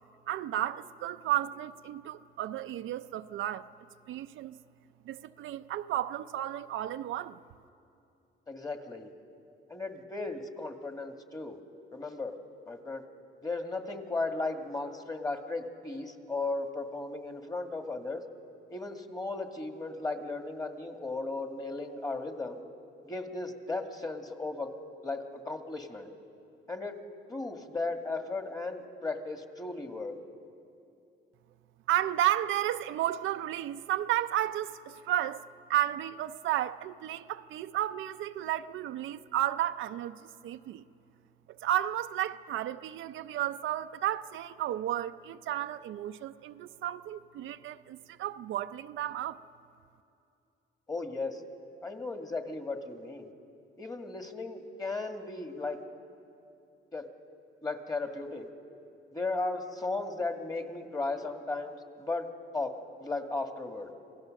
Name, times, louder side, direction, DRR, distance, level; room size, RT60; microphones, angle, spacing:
voice 1, 0.3-3.7 4.1-4.6 5.0-7.4 31.9-35.4 35.7-40.8 41.5-49.4, right 12 dB, 80° right, 0.6 m, -33 dB
voice 2, 8.5-9.1 9.7-11.6 11.9-12.3 12.7-13.0 13.4-18.2 18.7-22.6 23.0-24.7 25.0-26.1 26.7-27.0 27.3-30.2 50.9-51.4 51.8-53.3 53.8-55.8 56.9-57.1 57.6-58.5 59.1-62.3 62.5-63.9, left 3 dB, 20° left, 1.9 m, -36 dB
27.0 x 16.5 x 6.5 m
cardioid pair, 90°, 20 cm